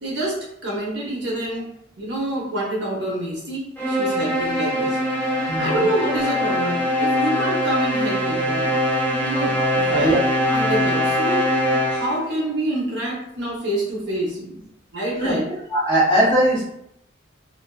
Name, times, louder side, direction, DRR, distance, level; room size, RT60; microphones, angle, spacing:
voice 1, 0.0-1.7 2.0-8.7 9.2-10.2 10.5-11.5 11.9-14.6 14.9-15.4, right 1 dB, 60° right, -3 dB, 0.8 m, -27 dB
sound 1, 3.8-12.3, equal, 10° left, 0.4 m, -22 dB
voice 2, 5.5-5.8 9.9-10.2 15.1-15.4 15.7-16.6, right 1 dB, 25° left, -8 dB, 0.9 m, -19 dB
2.5 x 2.3 x 2.2 m, 0.78 s
head